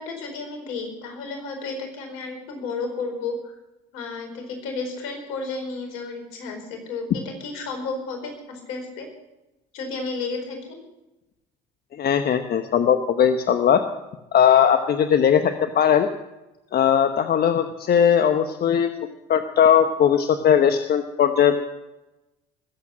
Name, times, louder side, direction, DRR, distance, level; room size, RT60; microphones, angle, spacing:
voice 1, 0.0-3.6 3.9-9.1 9.7-10.8, left 3 dB, 75° left, 4 dB, 4.7 m, -32 dB
voice 2, 11.9-13.8 14.3-16.1 16.7-18.9 19.3-21.6, left 8 dB, 50° left, 8 dB, 1.1 m, -19 dB
21.0 x 8.4 x 6.4 m, 0.99 s
hypercardioid pair, 70°, 21 cm